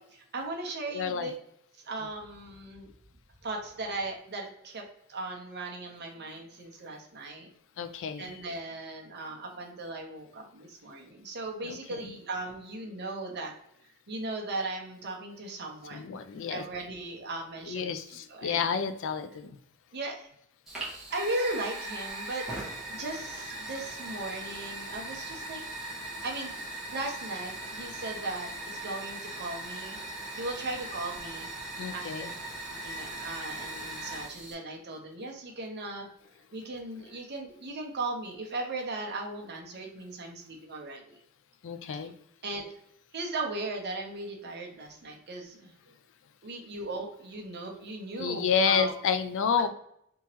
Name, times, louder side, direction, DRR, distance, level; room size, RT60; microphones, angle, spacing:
voice 1, 0.3-1.3 1.8-2.9 3.4-4.8 5.1-7.5 8.2-13.5 14.1-16.2 16.5-18.6 19.9-20.3 21.1-22.4 22.9-25.6 26.2-26.5 26.9-30.0 30.4-31.5 31.9-32.3 32.8-36.1 36.5-41.2 42.4-42.7 43.1-45.7 46.4-48.9, right 2 dB, 50° right, 1 dB, 0.9 m, -37 dB
voice 2, 0.9-1.3 7.8-8.4 11.6-12.0 15.9-16.6 17.7-19.6 31.8-32.3 41.6-42.1 48.2-49.7, left 6 dB, 60° left, 10 dB, 0.4 m, -30 dB
Fire, 20.7-34.5, right 1 dB, ahead, 1.2 m, -39 dB
3.5 x 3.0 x 3.0 m, 0.72 s
head